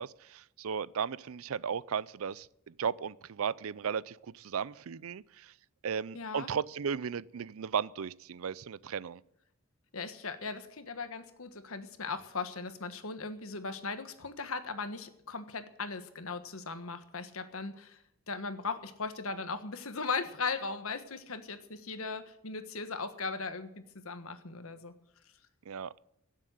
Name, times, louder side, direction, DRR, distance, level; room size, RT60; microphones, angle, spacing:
voice 1, 0.0-5.5 5.8-9.2 25.7-25.9, right 7 dB, 75° right, 0.5 m, -35 dB
voice 2, 6.1-6.5 9.9-18.0 18.3-24.9, left 4 dB, 75° left, 1.5 m, -38 dB
16.5 x 7.5 x 9.3 m
head